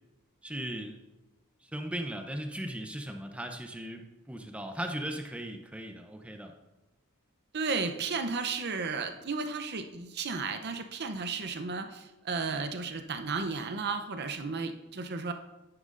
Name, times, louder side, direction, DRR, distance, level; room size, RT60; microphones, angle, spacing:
voice 1, 0.4-1.0 1.6-6.5, right 1 dB, 5° right, 4 dB, 0.6 m, -38 dB
voice 2, 7.5-15.3, right 4 dB, 50° right, 8 dB, 0.7 m, -33 dB
9.8 x 9.2 x 2.5 m, 1.0 s
head